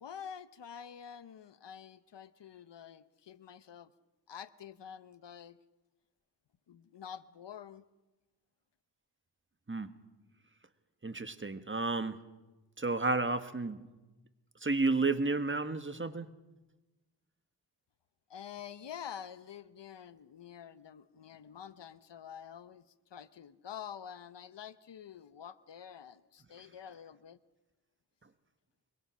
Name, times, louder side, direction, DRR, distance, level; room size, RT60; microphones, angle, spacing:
voice 1, 0.0-3.9 4.3-5.6 6.7-7.8 18.3-22.8 23.1-27.4, left 8 dB, 80° left, 15 dB, 0.9 m, -48 dB
voice 2, 11.0-12.2 12.8-13.8 14.6-16.3, right 3 dB, 30° right, 10 dB, 1.5 m, -31 dB
24.0 x 23.0 x 6.3 m, 1.1 s
wide cardioid pair, 65°, 42 cm